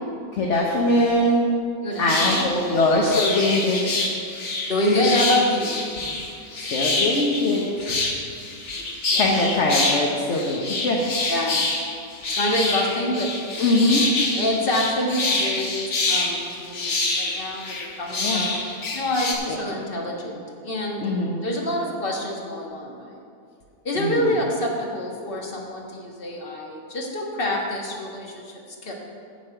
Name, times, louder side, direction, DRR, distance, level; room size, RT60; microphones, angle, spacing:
voice 1, 0.3-1.5 2.0-3.9 6.7-8.0 9.1-11.0 13.6-14.0 18.2-18.4 19.5-19.6 21.0-21.4 23.9-24.3, left 2 dB, 55° left, -1 dB, 1.3 m, -22 dB
voice 2, 1.8-2.8 4.7-6.1 8.7-9.2 11.3-11.6 12.3-13.3 14.3-15.7 16.1-23.1 23.8-28.9, left 1 dB, 40° left, -1 dB, 1.6 m, -27 dB
sound 1, 2.0-19.3, left 2 dB, 75° left, 1.8 m, -26 dB
10.5 x 5.4 x 7.8 m, 2.4 s
omnidirectional pair, 1.6 m